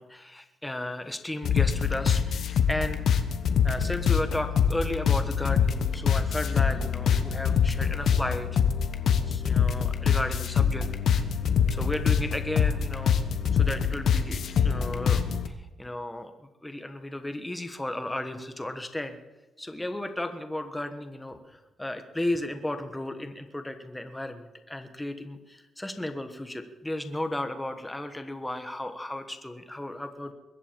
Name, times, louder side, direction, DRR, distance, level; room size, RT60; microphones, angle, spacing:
voice 1, 0.0-3.0 3.6-8.5 9.3-10.9 11.2-11.3 11.7-13.2 13.5-16.3 16.6-19.2 19.6-30.3, left 1 dB, 10° left, 7 dB, 1.2 m, -34 dB
sound 1, 1.4-15.5, left 7 dB, 65° left, 1.1 m, -25 dB
21.5 x 8.3 x 7.5 m, 1.1 s
cardioid pair, 120°, 0 cm